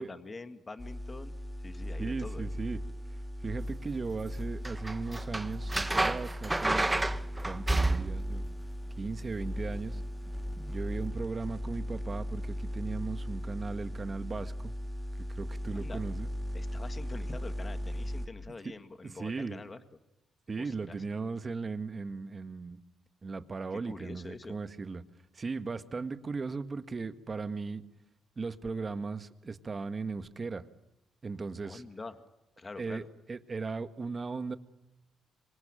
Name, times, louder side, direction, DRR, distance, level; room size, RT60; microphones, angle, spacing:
voice 1, 0.0-1.3 1.6-2.5 15.7-16.0 16.5-19.8 20.6-21.0 23.7-24.6 31.6-32.2 32.6-33.1, left 3 dB, 30° left, 9 dB, 1.9 m, -45 dB
sound 1, 0.8-18.3, equal, 5° left, 2.5 m, -37 dB
voice 2, 2.0-2.8 3.4-6.9 7.4-8.4 9.0-10.0 10.7-14.7 15.2-16.3 18.6-18.7 19.0-19.6 20.5-22.8 23.2-25.0 25.3-27.8 28.4-30.6 31.2-31.8 32.8-34.6, right 4 dB, 30° right, 10 dB, 1.7 m, -37 dB
sound 2, 4.6-8.3 10.6-10.7, right 2 dB, 15° right, 1.1 m, -29 dB
26.5 x 25.0 x 9.0 m, 0.90 s
cardioid pair, 90°, 0 cm